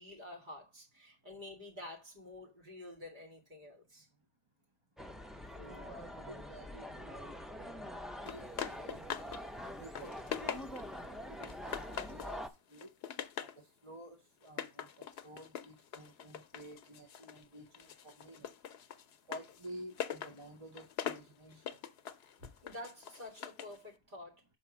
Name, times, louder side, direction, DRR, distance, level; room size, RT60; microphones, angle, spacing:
voice 1, 0.0-4.1 22.6-24.5, left 1 dB, 50° right, -1 dB, 2.5 m, -49 dB
sound 1, 5.0-12.5, equal, ahead, 0.3 m, -45 dB
voice 2, 5.6-7.7 8.1-9.0 9.5-10.6 11.1-12.4 12.7-12.9 13.4-14.9 15.2-18.5 19.3-21.8, right 1 dB, 30° right, 4 dB, 1.0 m, -51 dB
sound 2, 8.3-9.4 9.7-11.0 11.4-12.4 12.7-13.6 14.4-17.4 17.7-23.8, left 8 dB, 75° left, 0.9 m, -43 dB
5.8 x 4.1 x 6.1 m, 0.25 s
omnidirectional pair, 1.1 m